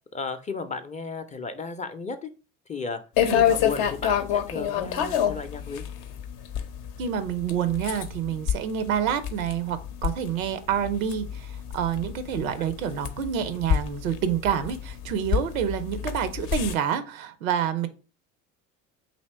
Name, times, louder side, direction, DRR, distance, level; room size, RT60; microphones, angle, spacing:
voice 1, 0.1-2.3 2.7-5.8 12.6-12.7, left 4 dB, 20° left, 8 dB, 0.4 m, -34 dB
sound 1, 3.2-16.7, left 9 dB, 60° left, 0.6 m, -28 dB
voice 2, 7.0-17.9, right 8 dB, 85° right, 12 dB, 0.6 m, -28 dB
2.9 x 2.8 x 4.3 m, 0.34 s
hypercardioid pair, 65°, 40 cm